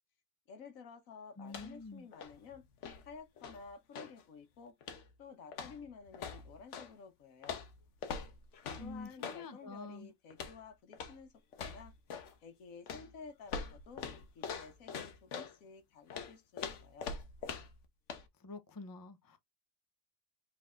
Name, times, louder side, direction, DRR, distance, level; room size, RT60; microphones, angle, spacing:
voice 1, 0.5-2.6 3.0-4.7 5.2-7.6 8.8-11.9 12.4-14.0 14.3-17.1, left 5 dB, 80° left, 1.3 m, -52 dB
sound 1, 1.4-1.9 2.1-4.2 4.8-5.2 5.5-6.9 7.4-9.5 10.3-10.6 10.9-11.2 11.5-12.4 12.9-15.6 16.1-17.8 18.1-18.3, left 6 dB, 65° left, 1.1 m, -44 dB
voice 2, 1.4-2.1 8.8-10.1 18.4-19.4, left 3 dB, 30° left, 0.4 m, -47 dB
4.3 x 4.0 x 2.4 m
omnidirectional pair, 1.4 m